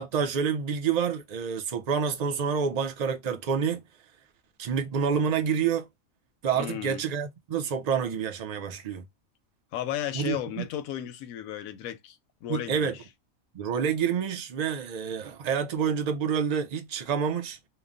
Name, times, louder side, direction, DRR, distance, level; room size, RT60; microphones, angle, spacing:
voice 1, 0.0-3.8 4.6-5.9 6.4-9.0 10.1-10.6 12.5-13.0 13.5-17.6, right 7 dB, 65° right, 0.4 m, -28 dB
voice 2, 6.5-7.0 9.7-12.9, left 11 dB, 85° left, 1.0 m, -34 dB
2.9 x 2.1 x 2.4 m
omnidirectional pair, 1.4 m